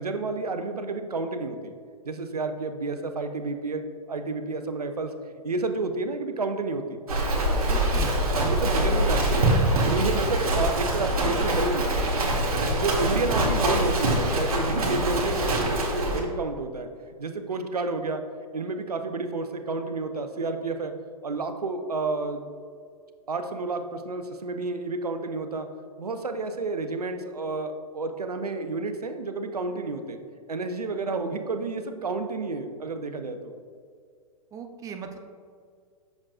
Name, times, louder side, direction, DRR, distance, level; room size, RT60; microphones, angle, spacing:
voice 1, 0.0-1.7 2.0-5.1 5.4-7.0 8.4-9.5 9.8-11.9 12.7-16.9 17.2-18.2 18.5-20.9 21.2-22.5 23.3-25.7 26.0-30.2 30.5-33.5, right 3 dB, 90° right, 7 dB, 0.6 m, -30 dB
Livestock farm animals working animals, 7.1-16.2, right 1 dB, 70° right, 1.5 m, -24 dB
voice 2, 7.7-8.2 13.1-13.2 13.6-13.8 14.8-15.1 34.5-35.2, right 6 dB, 15° right, 6 dB, 0.5 m, -38 dB
7.2 x 6.3 x 2.4 m, 2.1 s
hypercardioid pair, 110°, 19 cm